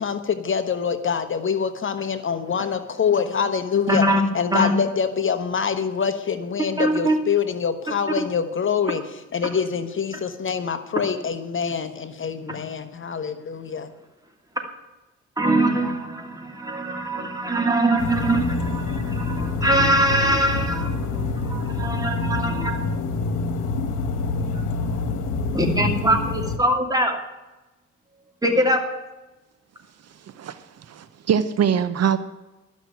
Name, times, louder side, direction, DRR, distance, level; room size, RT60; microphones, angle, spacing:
voice 1, 0.0-4.0 4.3-9.0 9.3-13.9, left 6 dB, 40° left, 10 dB, 1.1 m, -25 dB
voice 2, 3.9-4.2 4.5-4.8 6.8-7.2 15.4-22.9 24.3-24.4 25.5-27.2 28.4-28.8, right 1 dB, 10° right, 3 dB, 2.7 m, -22 dB
sound 1, 18.0-26.6, left 3 dB, 80° left, 1.4 m, -26 dB
voice 3, 30.3-32.2, right 8 dB, 55° right, 12 dB, 0.8 m, -23 dB
12.5 x 6.3 x 9.0 m, 1.1 s
cardioid pair, 90°, 30 cm